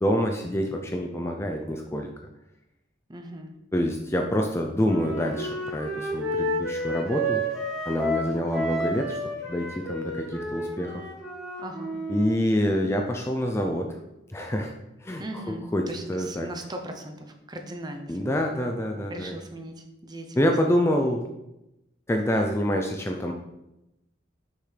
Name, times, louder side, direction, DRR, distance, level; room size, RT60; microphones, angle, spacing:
voice 1, 0.0-2.1 3.7-7.4 7.9-9.2 9.5-11.1 12.1-13.9 14.3-14.7 15.0-16.5 18.1-19.3 20.4-21.2 22.1-23.3, equal, 15° left, 3 dB, 0.4 m, -26 dB
voice 2, 3.1-3.5 11.6-12.0 15.2-18.6 19.1-20.5, right 1 dB, 20° right, 4 dB, 0.7 m, -39 dB
Wind instrument woodwind instrument, 4.8-12.3, right 1 dB, 5° right, 2.2 m, -31 dB
6.5 x 5.8 x 3.3 m, 0.90 s
head